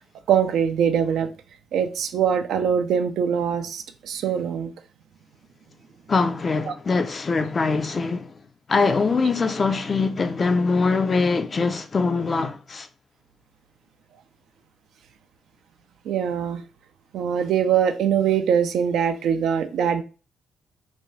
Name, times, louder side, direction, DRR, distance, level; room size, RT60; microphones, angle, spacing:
voice 1, 0.3-1.3 1.7-4.7 6.7-6.8 16.1-16.6 17.1-20.0, right 8 dB, 75° right, 0.3 m, -22 dB
voice 2, 6.1-8.3 8.7-12.9, left 4 dB, 40° left, 0.4 m, -23 dB
2.5 x 2.2 x 3.1 m
hypercardioid pair, 50°, 0 cm